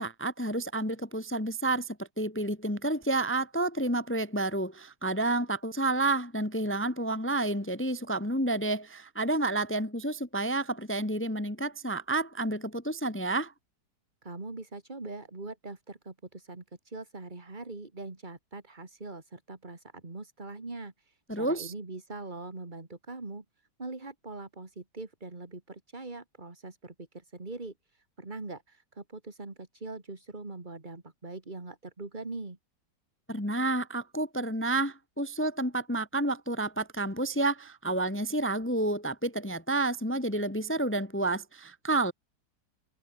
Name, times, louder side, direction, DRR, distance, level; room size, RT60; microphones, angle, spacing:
voice 1, 0.0-13.5 21.3-21.7 33.3-42.1, right 2 dB, 10° left, 1.0 m, -30 dB
voice 2, 14.2-23.4 23.8-32.6, right 3 dB, 25° right, 2.7 m, -42 dB
omnidirectional pair, 2.0 m